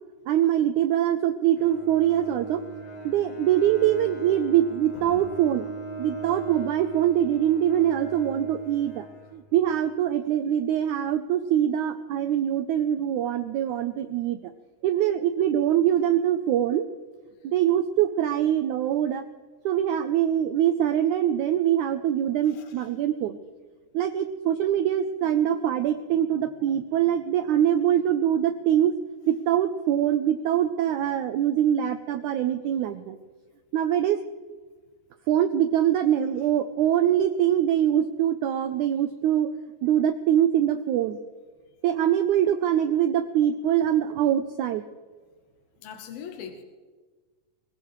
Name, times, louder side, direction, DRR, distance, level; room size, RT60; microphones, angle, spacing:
voice 1, 0.3-2.6 3.0-5.7 6.0-9.0 9.3-14.4 14.8-16.9 17.4-19.2 19.7-23.4 23.9-28.9 29.3-33.2 33.7-34.2 35.3-39.5 39.8-41.2 41.8-44.8, right 10 dB, 80° right, 9 dB, 1.7 m, -23 dB
Bowed string instrument, 1.5-9.8, right 2 dB, 30° left, 4.0 m, -39 dB
voice 2, 4.9-5.3 22.5-22.9 45.8-46.6, left 7 dB, 85° left, 4 dB, 2.9 m, -41 dB
22.0 x 18.0 x 3.1 m, 1.4 s
omnidirectional pair, 4.1 m